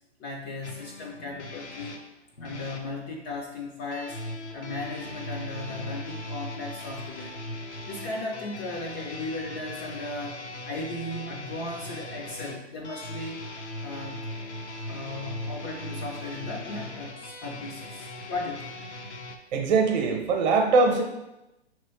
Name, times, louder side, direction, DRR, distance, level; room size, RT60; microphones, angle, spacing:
voice 1, 0.2-2.0 2.4-4.2 4.5-7.4 7.9-13.4 13.8-14.3 14.9-18.7, left 2 dB, 20° left, -1 dB, 0.4 m, -36 dB
sound 1, 0.6-2.9 3.9-19.4, left 1 dB, 90° left, 0.7 m, -39 dB
voice 2, 19.5-21.0, right 4 dB, 40° right, 3 dB, 0.9 m, -22 dB
5.5 x 3.1 x 3.0 m, 0.92 s
figure-of-eight pair, 115°, 33 cm